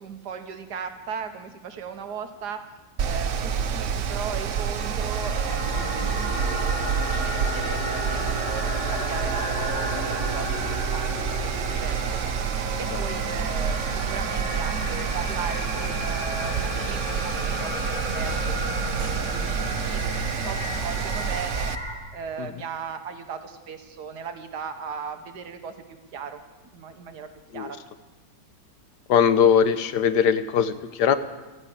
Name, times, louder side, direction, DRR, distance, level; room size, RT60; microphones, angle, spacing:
voice 1, 0.0-2.6 3.0-12.2 12.8-21.7 22.1-25.7 26.1-26.4 26.7-27.3 27.5-27.8, right 6 dB, 70° right, 7 dB, 1.7 m, -37 dB
Mechanical fan, 3.0-21.7, right 7 dB, 55° right, 0.9 m, -28 dB
sound 1, 4.1-21.9, left 1 dB, 45° left, 4.7 m, -33 dB
sound 2, 16.3-20.1, left 1 dB, 30° left, 2.5 m, -49 dB
voice 2, 29.1-31.2, left 7 dB, 75° left, 12 dB, 1.3 m, -20 dB
13.0 x 11.0 x 8.5 m, 1.2 s
omnidirectional pair, 1.9 m